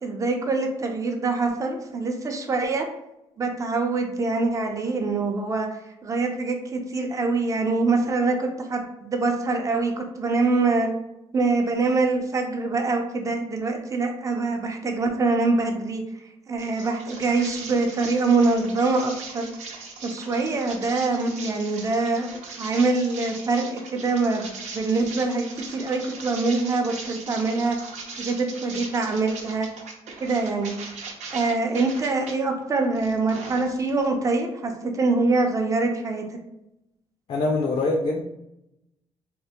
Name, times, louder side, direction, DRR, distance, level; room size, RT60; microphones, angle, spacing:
voice 1, 0.0-2.9 3.4-5.7 6.0-10.9 11.3-16.0 16.5-19.5 20.0-22.3 22.6-27.8 28.2-29.7 30.2-30.7 31.3-36.2, right 3 dB, 25° right, 3 dB, 0.6 m, -24 dB
sound 1, 16.6-32.3 32.8-34.1, right 4 dB, 80° right, 0.7 m, -39 dB
voice 2, 37.3-38.2, left 2 dB, 60° left, 0 dB, 0.5 m, -23 dB
3.5 x 2.5 x 2.8 m, 0.87 s
cardioid pair, 125°, 12 cm